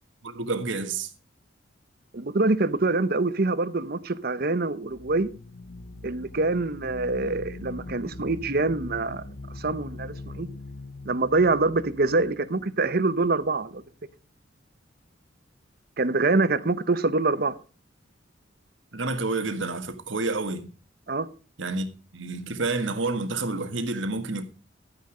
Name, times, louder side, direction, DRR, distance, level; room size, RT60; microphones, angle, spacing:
voice 1, 0.2-1.1 18.9-20.7 21.6-21.9 22.1-24.5, right 3 dB, 90° right, 1.7 m, -29 dB
voice 2, 2.1-5.3 6.0-9.2 9.6-10.5 11.0-13.8 16.0-17.6 21.1-21.3, right 3 dB, 55° right, 0.9 m, -25 dB
sound 1, 4.8-13.5, left 2 dB, 90° left, 0.9 m, -42 dB
12.0 x 9.4 x 5.1 m
head